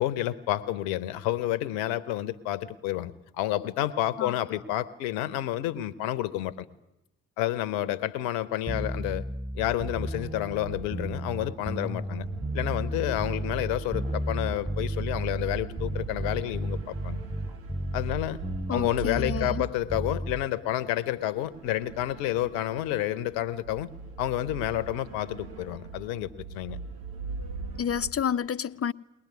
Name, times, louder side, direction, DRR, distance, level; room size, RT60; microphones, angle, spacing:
voice 1, 0.0-6.7 7.4-9.3 9.5-12.3 12.5-17.2 17.9-18.4 18.7-23.9 24.2-26.8, left 13 dB, 80° left, 1.1 m, -30 dB
sound 1, 8.7-20.5, right 1 dB, 15° right, 2.9 m, -33 dB
sound 2, 10.2-28.1, right 4 dB, 70° right, 2.1 m, -43 dB
voice 2, 18.7-19.6 27.8-28.9, left 8 dB, 40° left, 0.9 m, -29 dB
21.5 x 19.5 x 9.6 m
hypercardioid pair, 40°, 36 cm